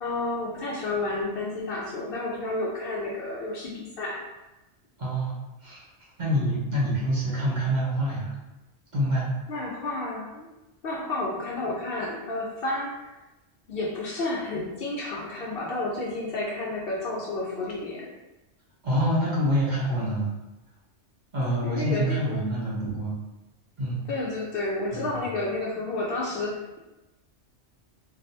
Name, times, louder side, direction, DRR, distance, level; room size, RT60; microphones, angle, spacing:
voice 1, 0.0-4.2 9.5-10.5 10.8-13.1 13.7-18.1 21.6-22.4 24.1-26.8, left 2 dB, 60° left, -3 dB, 0.7 m, -31 dB
voice 2, 5.0-5.3 5.6-5.9 6.2-8.3 8.9-9.3 18.8-20.3 21.3-23.1 23.8-24.0 24.9-25.3, equal, 45° right, -7 dB, 0.9 m, -26 dB
3.3 x 2.3 x 2.7 m, 1.0 s
omnidirectional pair, 1.2 m